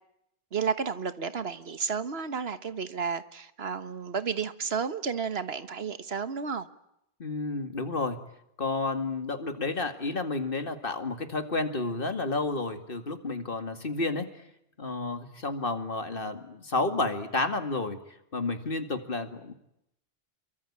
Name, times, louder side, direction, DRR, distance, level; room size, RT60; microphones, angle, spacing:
voice 1, 0.5-6.7, right 6 dB, 80° right, 1.6 m, -32 dB
voice 2, 7.2-8.2 8.6-14.3 14.8-18.0 18.3-19.5, left 3 dB, 60° left, 2.4 m, -31 dB
27.5 x 23.5 x 8.8 m
omnidirectional pair, 1.0 m